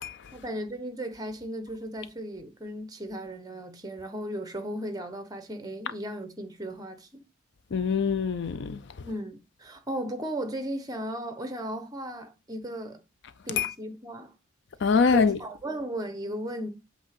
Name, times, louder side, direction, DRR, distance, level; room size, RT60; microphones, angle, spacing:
voice 1, 0.3-7.2 9.0-13.0 13.5-14.3 15.1-16.7, right 1 dB, 20° right, 1.0 m, -36 dB
voice 2, 7.7-8.8 13.6-13.7 14.8-15.4, left 5 dB, 55° left, 0.4 m, -24 dB
8.1 x 2.9 x 6.0 m
head